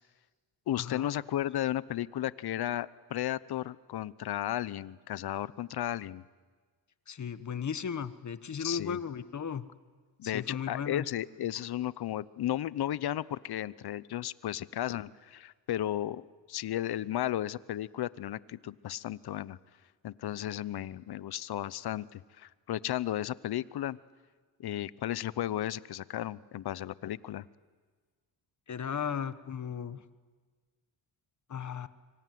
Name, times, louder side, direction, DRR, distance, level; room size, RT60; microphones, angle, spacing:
voice 1, 0.7-6.2 8.6-9.0 10.2-16.2 16.5-19.6 20.0-24.0 24.6-27.4, left 12 dB, 60° left, 19 dB, 0.9 m, -34 dB
voice 2, 7.1-9.7 10.2-11.0 28.7-30.0 31.5-31.9, left 7 dB, 40° left, 13 dB, 1.3 m, -36 dB
25.0 x 24.5 x 9.4 m, 1.5 s
cardioid pair, 90°, 43 cm